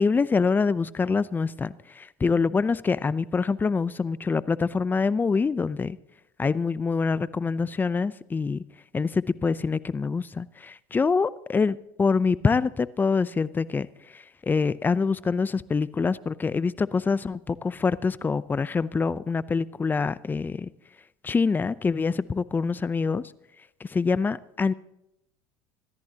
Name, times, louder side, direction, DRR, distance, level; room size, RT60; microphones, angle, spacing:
voice 1, 0.0-6.0 6.4-8.6 8.9-13.9 14.1-20.7 21.2-23.2 23.8-24.7, left 4 dB, 20° left, 18 dB, 0.5 m, -25 dB
26.5 x 13.5 x 2.9 m, 0.84 s
supercardioid pair, 95°, 10 cm